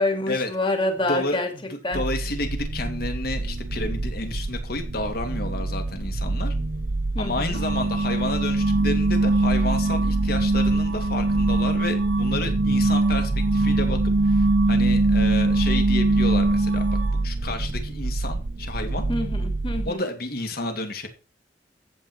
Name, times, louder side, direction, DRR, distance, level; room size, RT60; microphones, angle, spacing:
voice 1, 0.0-1.5 1.8-2.0 7.1-7.6 19.1-20.1, left 2 dB, 30° left, 2.6 m, -26 dB
voice 2, 1.1-6.5 7.2-14.0 14.2-16.8 17.2-19.0 19.8-21.1, left 2 dB, 60° left, 2.8 m, -31 dB
sound 1, 1.9-19.9, right 2 dB, 50° right, 0.6 m, -28 dB
sound 2, 7.5-17.3, right 2 dB, 85° right, 1.1 m, -22 dB
14.0 x 8.4 x 4.6 m
head